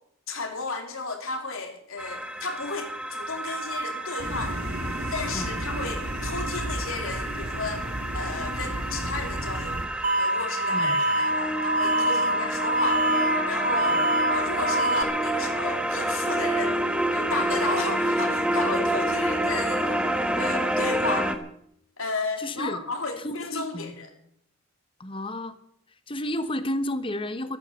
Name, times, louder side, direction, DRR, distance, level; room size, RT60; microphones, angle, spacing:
voice 1, 0.3-4.6 5.1-7.9 8.1-9.8 10.2-14.0 14.3-16.8 17.1-20.1 20.4-21.3 22.0-24.1, left 3 dB, 75° left, 5 dB, 3.1 m, -33 dB
sound 1, 2.0-21.4, right 1 dB, 5° right, 1.1 m, -28 dB
sound 2, 4.2-9.9, right 1 dB, 90° right, 2.1 m, -33 dB
sound 3, 10.0-15.0, right 1 dB, 35° right, 0.8 m, -25 dB
voice 2, 10.7-11.0 13.9-14.1 22.4-22.8 23.2-24.0 25.0-25.6 26.1-27.6, left 1 dB, 25° left, 12 dB, 1.1 m, -32 dB
14.0 x 13.5 x 7.0 m, 0.70 s
head